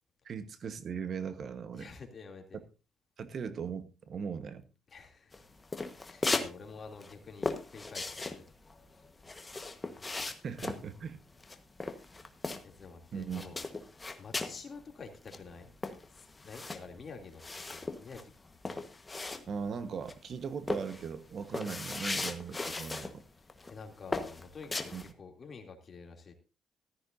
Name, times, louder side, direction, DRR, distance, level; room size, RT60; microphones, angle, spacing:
voice 1, 0.2-1.9 2.5-2.6 3.2-4.6 10.2-11.2 13.1-13.4 19.5-23.2 24.9-25.0, right 6 dB, 55° right, 11 dB, 1.2 m, -39 dB
voice 2, 1.7-2.6 4.9-5.4 6.0-8.4 8.9-9.0 12.6-13.6 14.2-15.7 16.1-17.4 17.7-18.3 23.7-26.3, left 4 dB, 45° left, 3 dB, 2.8 m, -49 dB
sound 1, 5.3-6.5 6.8-12.9 13.2-14.6 15.0-15.1 15.3-19.8 20.1-20.3 20.7-23.1 23.5-23.7 24.1-25.1, left 3 dB, 25° left, 1.3 m, -37 dB
14.5 x 13.5 x 2.6 m, 0.30 s
cardioid pair, 90°, 0 cm